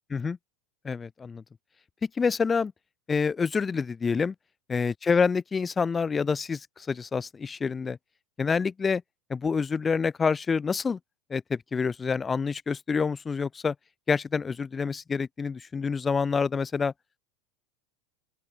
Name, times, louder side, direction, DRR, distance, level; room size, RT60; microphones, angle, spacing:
voice 1, 0.8-1.4 2.2-2.7 3.1-4.3 4.7-8.0 8.4-9.0 9.3-11.0 11.3-13.7 14.1-16.9, left 5 dB, 20° left, 0.3 m, -27 dB
open air
supercardioid pair, 125°, 0 cm